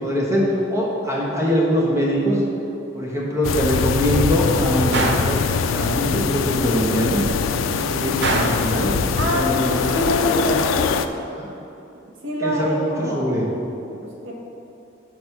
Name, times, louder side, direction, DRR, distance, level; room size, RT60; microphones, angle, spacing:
voice 1, 0.0-2.4 2.9-7.2 7.8-8.9 9.3-9.7 10.3-10.5 11.3-11.5 12.4-13.4, equal, 15° right, -4 dB, 1.2 m, -22 dB
sound 1, 3.4-11.1, left 6 dB, 90° left, 0.4 m, -23 dB
Gunshot gunfire, 4.9-5.4 8.2-8.7, right 2 dB, 60° right, 0.6 m, -22 dB
voice 2, 9.9-10.8 12.2-13.4 14.2-14.3, equal, 85° right, -2 dB, 1.3 m, -25 dB
6.3 x 4.2 x 5.9 m, 2.8 s
head